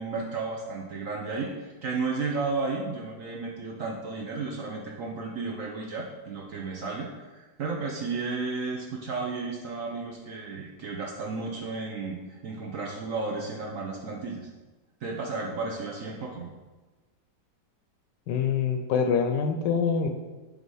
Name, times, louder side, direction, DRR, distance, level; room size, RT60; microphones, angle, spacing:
voice 1, 0.0-14.5 15.0-16.5, right 4 dB, 60° right, -1 dB, 0.9 m, -33 dB
voice 2, 18.3-20.1, left 6 dB, 75° left, 5 dB, 1.2 m, -25 dB
5.3 x 3.9 x 4.7 m, 1.2 s
omnidirectional pair, 2.0 m